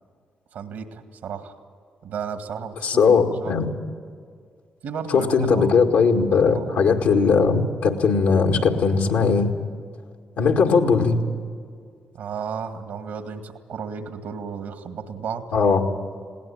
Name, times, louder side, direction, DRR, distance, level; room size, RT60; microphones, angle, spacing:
voice 1, 0.5-1.5 2.0-3.5 4.8-5.8 6.5-6.8 12.1-15.4, right 6 dB, 75° right, 8 dB, 1.9 m, -33 dB
voice 2, 2.8-3.7 5.1-9.5 10.4-11.2 15.5-15.8, left 5 dB, 75° left, 3 dB, 2.0 m, -19 dB
20.0 x 18.0 x 8.8 m, 2.1 s
hypercardioid pair, 40°, 3 cm